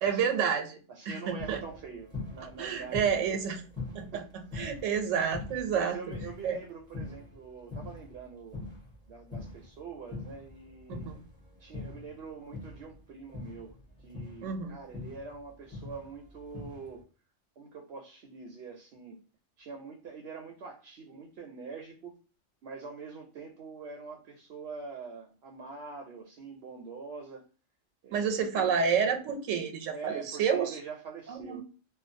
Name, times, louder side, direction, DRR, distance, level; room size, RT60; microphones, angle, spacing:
voice 1, 0.0-0.8 1.1-1.6 2.6-3.6 3.9-6.0 6.4-6.6 10.9-11.2 14.4-14.8 28.1-30.7 31.3-31.6, right 7 dB, 85° right, 6 dB, 1.0 m, -29 dB
voice 2, 0.9-3.4 4.1-4.3 5.7-8.7 9.1-11.1 11.6-17.1 17.6-19.2 19.6-22.2 22.6-27.5 28.0-28.8 29.9-31.6, right 5 dB, 60° right, 1 dB, 0.8 m, -44 dB
sound 1, 1.4-8.2 8.5-13.0 13.3-17.0, left 3 dB, 5° left, 0.8 m, -43 dB
2.5 x 2.2 x 2.5 m, 0.36 s
omnidirectional pair, 1.3 m